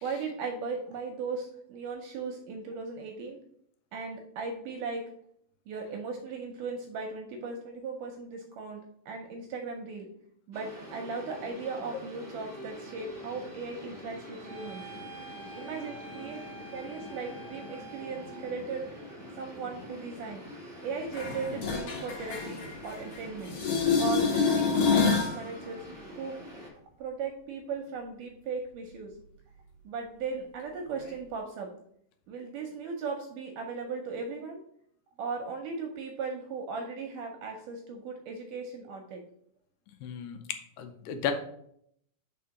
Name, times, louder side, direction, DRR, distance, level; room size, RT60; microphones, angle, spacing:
voice 1, 0.0-3.4 3.9-5.1 5.7-10.1 10.5-14.9 15.5-16.4 16.7-19.0 19.4-20.4 20.8-23.6 24.0-25.9 26.2-26.4 27.0-29.2 29.9-31.7 32.3-34.6 35.2-39.2, right 4 dB, 75° right, 3 dB, 2.0 m, -37 dB
sound 1, 10.5-26.7, equal, 5° right, 1.9 m, -45 dB
sound 2, 14.5-18.7, right 2 dB, 55° right, 1.4 m, -47 dB
sound 3, 21.1-23.2 23.5-25.4 31.1-31.2, left 5 dB, 60° left, 1.7 m, -27 dB
voice 2, 40.0-40.4 40.8-41.3, left 9 dB, 80° left, 7 dB, 2.2 m, -33 dB
5.1 x 4.4 x 5.7 m, 0.70 s
omnidirectional pair, 4.1 m